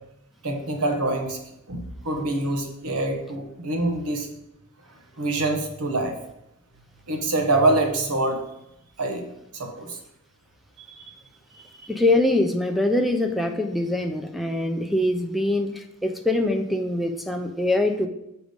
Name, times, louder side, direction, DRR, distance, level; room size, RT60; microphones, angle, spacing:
voice 1, 0.4-1.4 1.7-4.3 5.2-6.1 7.1-8.4 9.0-9.2 9.5-10.0 11.0-11.1, right 2 dB, 85° right, 3 dB, 1.3 m, -25 dB
voice 2, 11.9-18.1, left 1 dB, ahead, 6 dB, 0.5 m, -23 dB
6.6 x 4.8 x 5.1 m, 0.84 s
head